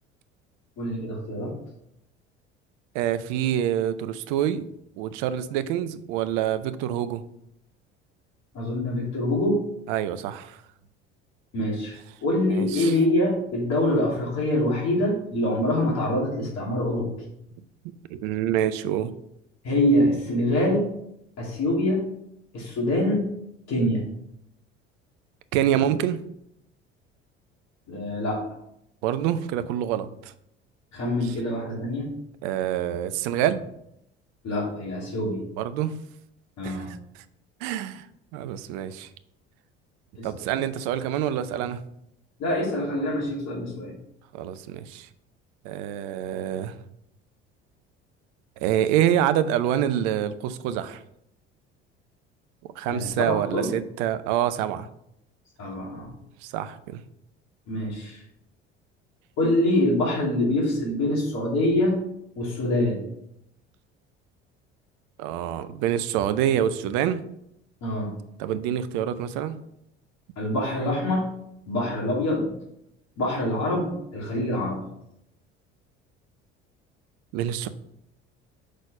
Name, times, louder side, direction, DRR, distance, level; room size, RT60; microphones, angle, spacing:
voice 1, 0.8-1.5 8.5-9.6 11.5-17.1 19.6-20.9 21.4-22.1 22.5-23.3 23.7-24.1 27.9-28.4 30.9-32.1 34.4-35.5 36.6-36.9 40.1-40.3 42.4-43.9 52.9-53.7 55.6-56.1 57.7-58.2 59.4-62.0 62.3-63.1 67.8-68.1 70.4-71.3 71.7-72.5 73.2-74.8, left 1 dB, 50° left, -2 dB, 2.9 m, -25 dB
voice 2, 2.9-4.7 5.0-7.2 9.9-10.6 12.5-12.9 18.1-19.1 25.5-26.2 29.0-30.3 31.2-31.3 32.4-33.6 35.6-35.9 36.6-36.8 37.6-38.1 38.3-39.1 40.2-41.8 44.3-45.1 45.6-46.8 48.6-51.0 52.8-54.9 56.4-57.0 65.2-67.2 68.4-69.6 77.3-77.7, right 10 dB, 60° right, 12 dB, 0.6 m, -26 dB
6.5 x 4.1 x 5.0 m, 0.78 s
figure-of-eight pair, 60°, 34 cm